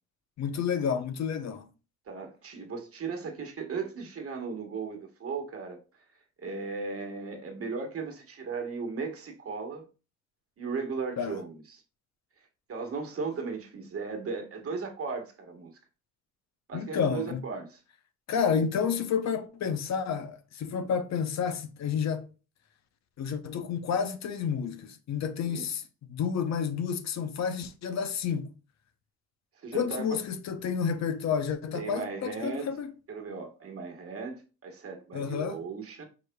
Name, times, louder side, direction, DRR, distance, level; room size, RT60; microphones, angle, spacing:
voice 1, 0.4-1.7 11.2-11.4 16.7-17.4 18.3-22.3 23.2-28.5 29.7-32.9 35.1-35.6, left 7 dB, 65° left, 0.7 m, -30 dB
voice 2, 2.1-5.8 6.4-9.9 10.6-11.8 12.7-15.7 16.7-17.8 25.5-25.7 29.6-30.2 31.7-32.7 33.1-36.1, right 4 dB, 50° right, 1.4 m, -36 dB
4.9 x 4.7 x 2.2 m
cardioid pair, 90°, 29 cm